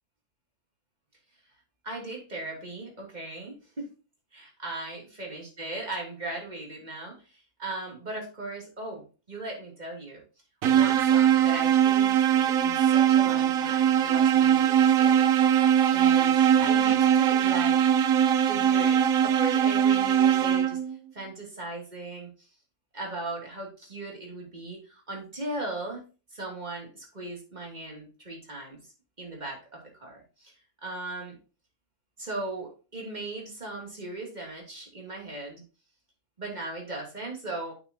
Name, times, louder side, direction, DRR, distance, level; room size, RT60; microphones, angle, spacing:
voice 1, 1.8-3.9 4.3-10.2 10.7-15.3 15.9-17.8 18.5-20.8 21.1-22.5 22.9-26.0 26.3-28.8 29.2-30.5 30.8-31.3 32.2-35.6 36.4-37.7, right 2 dB, 25° right, -1 dB, 2.8 m, -38 dB
sound 1, 10.6-21.0, right 9 dB, 65° right, 1.0 m, -21 dB
8.6 x 7.3 x 2.8 m, 0.34 s
omnidirectional pair, 1.7 m